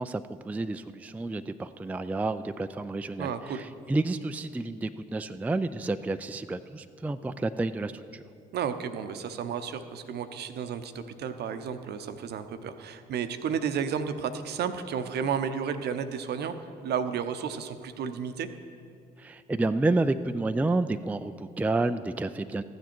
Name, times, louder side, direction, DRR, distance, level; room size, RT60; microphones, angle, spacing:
voice 1, 0.0-8.2 19.2-22.6, right 2 dB, 5° right, 10 dB, 0.4 m, -30 dB
voice 2, 3.2-3.6 8.5-16.5 16.8-18.5, right 7 dB, 55° right, 9 dB, 0.8 m, -32 dB
14.0 x 9.2 x 4.5 m, 2.4 s
hypercardioid pair, 50°, 20 cm